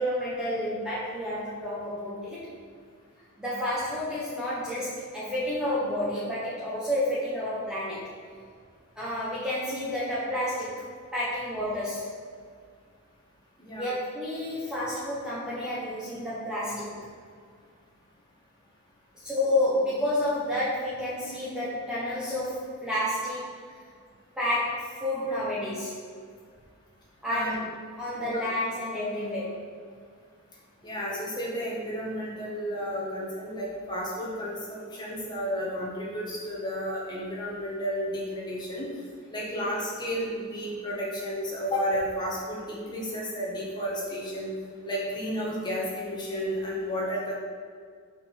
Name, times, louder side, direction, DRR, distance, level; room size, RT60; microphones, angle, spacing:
voice 1, 0.0-2.4 3.4-8.1 9.0-12.0 13.8-17.0 19.1-23.5 24.4-26.0 27.2-27.6 28.0-29.6, left 1 dB, 5° right, -9 dB, 1.1 m, -30 dB
voice 2, 27.3-27.6 28.1-28.4 30.8-38.9 39.3-44.5 44.8-47.3, equal, 20° left, -5 dB, 1.5 m, -32 dB
5.1 x 4.6 x 5.8 m, 2.1 s
head